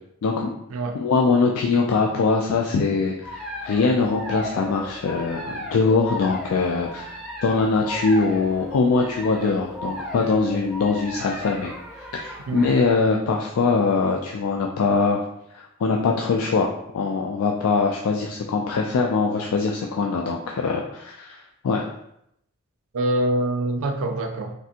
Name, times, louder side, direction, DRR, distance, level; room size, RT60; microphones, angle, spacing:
voice 1, 1.0-7.2 7.4-11.7 12.1-15.2 15.5-21.8, left 4 dB, 85° left, 0 dB, 0.3 m, -22 dB
sound 1, 3.2-12.9, equal, ahead, 0.5 m, -35 dB
voice 2, 22.9-24.5, right 1 dB, 75° right, 5 dB, 0.4 m, -24 dB
3.3 x 2.5 x 2.7 m, 0.77 s
head